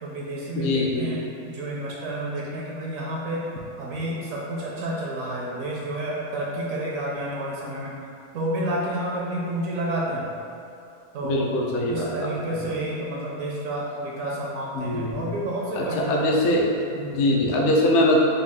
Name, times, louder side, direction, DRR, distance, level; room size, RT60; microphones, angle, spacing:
voice 1, 0.0-3.5 3.8-8.0 8.3-10.3 11.1-11.4 11.9-16.4 16.9-17.2, right 1 dB, 70° right, -4 dB, 0.9 m, -30 dB
voice 2, 0.6-1.1 11.2-12.6 14.7-15.3 15.7-16.7 17.1-18.2, left 1 dB, 65° left, -1 dB, 0.7 m, -22 dB
4.0 x 2.3 x 3.5 m, 2.5 s
omnidirectional pair, 1.6 m